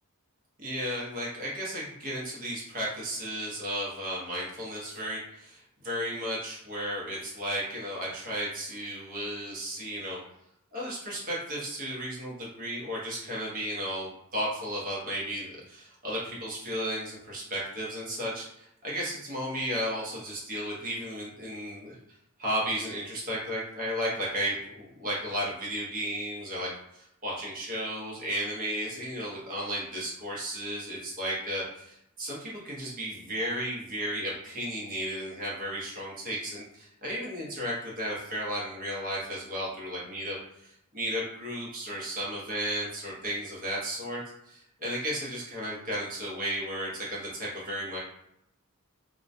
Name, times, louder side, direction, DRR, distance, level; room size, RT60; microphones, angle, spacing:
voice 1, 0.6-10.2 10.7-22.0 22.4-48.0, equal, 40° right, -5 dB, 0.8 m, -34 dB
2.2 x 2.1 x 2.6 m, 0.78 s
head